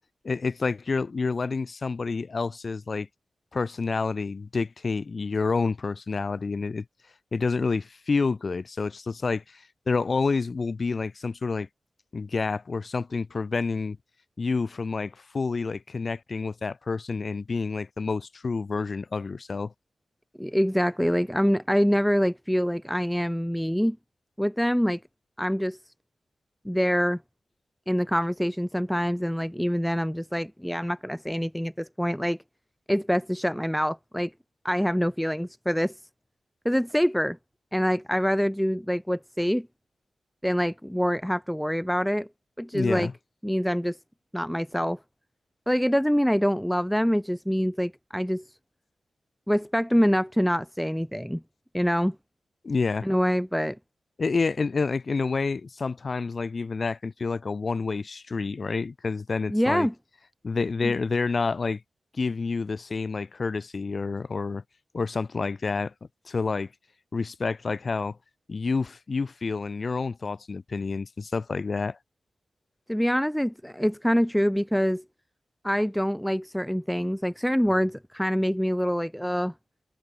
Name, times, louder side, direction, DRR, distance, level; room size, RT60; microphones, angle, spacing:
voice 1, 0.2-3.1 3.5-6.8 7.3-11.7 12.1-14.0 14.4-19.7 42.7-43.1 52.6-53.1 54.2-59.9 60.4-61.8 62.1-64.6 64.9-65.9 66.3-66.7 67.1-68.2 68.5-72.0, left 4 dB, 50° left, 2.1 m, -28 dB
voice 2, 20.4-24.0 24.4-25.0 25.4-25.9 26.6-27.2 27.9-32.4 32.9-34.3 34.6-36.0 36.6-37.4 37.7-39.7 40.4-42.3 42.6-43.1 43.4-44.0 44.3-45.0 45.7-48.6 49.5-51.4 51.7-52.2 53.0-53.8 59.5-59.9 60.8-60.9 72.9-75.0 75.6-79.5, equal, ahead, 0.8 m, -25 dB
cardioid pair, 75°, 0 cm